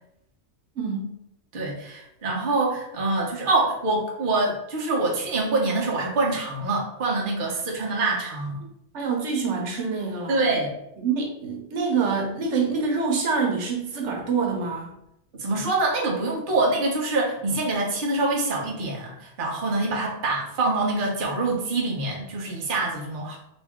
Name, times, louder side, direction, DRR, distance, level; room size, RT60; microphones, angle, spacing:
voice 1, 0.8-1.1 8.9-10.4 11.0-14.9, right 5 dB, 80° right, 1 dB, 1.1 m, -26 dB
voice 2, 1.5-8.6 10.3-10.7 15.3-23.4, right 2 dB, 50° right, -2 dB, 0.9 m, -25 dB
3.1 x 2.6 x 3.5 m, 0.79 s
omnidirectional pair, 1.2 m